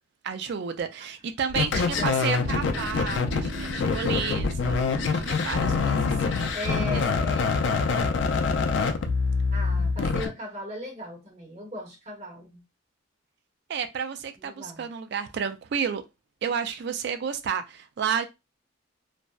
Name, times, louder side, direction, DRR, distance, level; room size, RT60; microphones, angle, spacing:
voice 1, 0.2-6.5 6.9-7.0 7.5-7.6 10.0-10.1 13.7-16.0 16.4-18.3, right 7 dB, 55° right, 0.3 m, -31 dB
sound 1, 1.5-10.3, left 4 dB, 65° left, 0.3 m, -25 dB
voice 2, 1.5-2.2 6.3-8.3 9.5-12.6 14.4-14.9, equal, 35° right, 1.1 m, -38 dB
sound 2, 2.2-7.2, right 3 dB, 75° right, 1.1 m, -41 dB
2.6 x 2.1 x 2.2 m
head